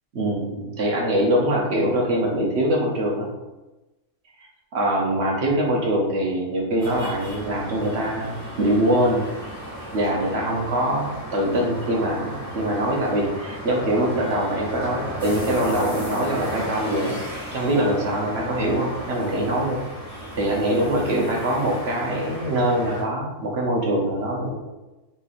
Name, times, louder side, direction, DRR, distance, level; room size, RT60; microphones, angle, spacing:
voice 1, 0.1-3.3 4.4-4.5 4.7-9.3 9.9-19.8 20.3-24.5, right 1 dB, 55° right, -2 dB, 0.9 m, -23 dB
sound 1, 6.8-23.0, equal, 25° right, 1.4 m, -35 dB
4.1 x 3.1 x 2.4 m, 1.1 s
omnidirectional pair, 1.4 m